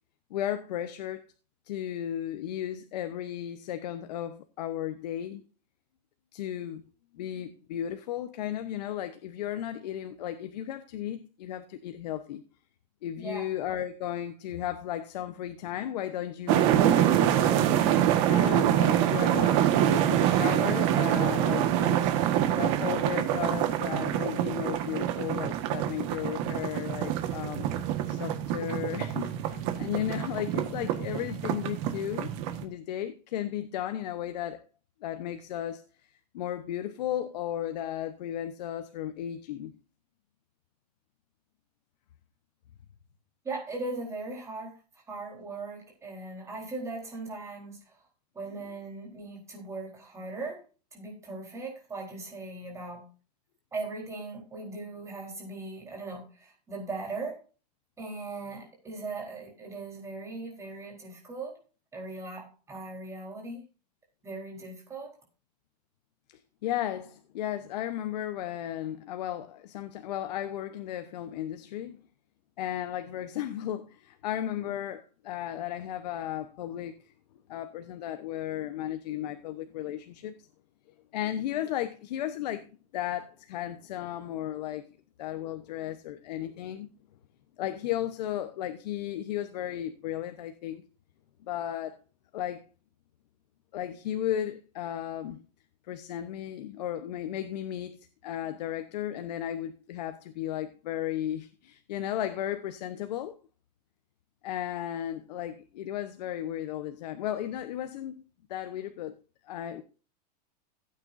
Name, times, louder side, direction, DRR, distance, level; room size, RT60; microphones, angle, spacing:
voice 1, 0.3-1.2 1.7-5.4 6.3-6.8 7.1-12.4 13.0-18.0 18.3-22.1 22.6-27.7 28.1-32.3 32.6-34.6 35.0-36.1 36.3-39.7 66.6-72.0 72.6-77.1 77.5-80.3 81.1-84.9 85.2-86.9 87.6-90.8 91.4-92.0 92.3-92.7 93.7-95.4 95.9-103.3 104.4-108.2 108.5-109.1 109.5-109.8, left 11 dB, 75° left, 1.0 m, -35 dB
voice 2, 13.2-13.5 43.4-44.8 45.1-48.0 48.3-50.6 50.9-53.0 53.7-57.4 58.0-61.5 61.9-63.6 64.2-65.2, right 3 dB, 15° right, 4.0 m, -39 dB
sound 1, 16.5-32.6, right 11 dB, 45° right, 1.5 m, -26 dB
16.0 x 9.0 x 2.6 m
supercardioid pair, 160°, 21 cm